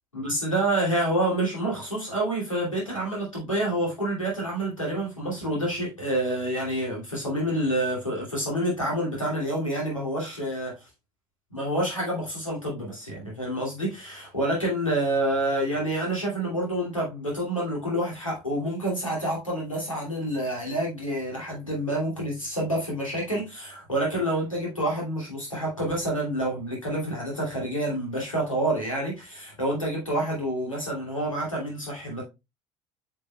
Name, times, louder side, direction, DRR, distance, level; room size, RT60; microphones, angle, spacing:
voice 1, 0.1-10.7 11.5-32.2, right 1 dB, 90° left, 2.6 m, -28 dB
8.1 x 5.6 x 2.2 m
figure-of-eight pair, 60°, 16 cm